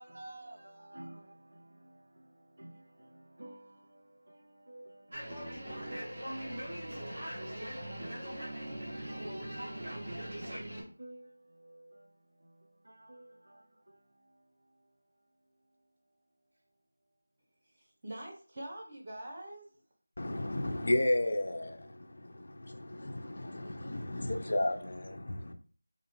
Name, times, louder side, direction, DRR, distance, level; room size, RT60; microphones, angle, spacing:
voice 1, 0.0-15.9 22.6-24.4, right 1 dB, 65° right, 0.4 m, -53 dB
sound 1, 5.1-10.8, right 1 dB, 40° right, 0.9 m, -41 dB
voice 2, 17.8-19.7, right 1 dB, 20° right, 0.6 m, -44 dB
voice 3, 20.2-25.5, left 1 dB, 40° left, 0.3 m, -33 dB
2.6 x 2.4 x 2.9 m
figure-of-eight pair, 180°, 0 cm